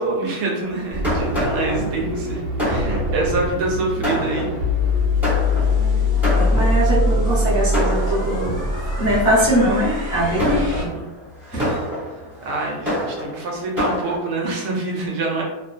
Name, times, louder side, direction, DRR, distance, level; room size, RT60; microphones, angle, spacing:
voice 1, 0.0-4.5 10.5-11.0 11.5-11.8 12.4-15.4, right 2 dB, 80° right, -1 dB, 1.1 m, -26 dB
Fireworks, 0.6-7.1 7.7-8.6 9.2-9.5 10.0-14.2, equal, ahead, 0.8 m, -27 dB
sound 1, 0.9-10.8, left 2 dB, 45° right, 0.8 m, -22 dB
voice 2, 6.3-8.6 9.0-10.9 11.5-11.9, equal, 20° left, -10 dB, 0.4 m, -21 dB
2.8 x 2.1 x 2.4 m, 1.0 s
omnidirectional pair, 1.7 m